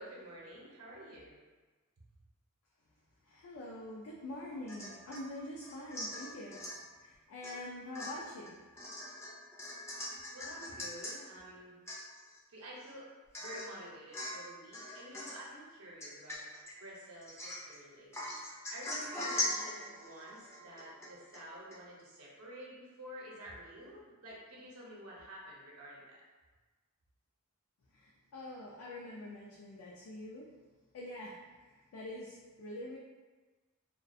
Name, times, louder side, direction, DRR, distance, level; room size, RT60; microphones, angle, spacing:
voice 1, 0.0-1.4 10.3-11.7 12.5-13.1 13.4-18.3 18.7-26.2, equal, 85° right, -4 dB, 0.7 m, -50 dB
voice 2, 3.3-6.6 7.0-8.6 27.9-30.5 30.9-33.0, left 1 dB, 90° left, -4 dB, 0.4 m, -45 dB
Domestic sounds home sounds / Chink clink / Drip, 4.7-5.3 5.6-6.8 7.4-7.6 7.9-11.2 11.5-11.6 11.9-12.4 12.8-12.9 13.3-13.8 14.1-14.5 14.7-15.4 16.0-16.7 17.2-17.8 18.1-21.4 21.7-21.8, left 1 dB, 10° left, 0.3 m, -41 dB
2.3 x 2.2 x 2.5 m, 1.3 s
head